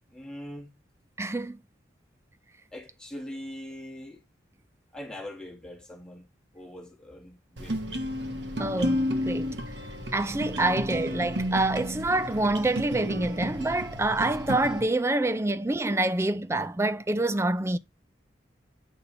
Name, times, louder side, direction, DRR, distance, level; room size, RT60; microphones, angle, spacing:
voice 1, 0.1-0.7 2.7-4.2 4.9-6.3 6.5-8.0 10.7-10.8, left 1 dB, 5° left, 2.0 m, -42 dB
voice 2, 1.2-1.6 8.6-9.6 10.1-17.8, right 2 dB, 15° right, 0.4 m, -26 dB
sound 1, 7.6-14.8, equal, 70° right, 1.3 m, -32 dB
9.0 x 5.4 x 4.1 m
head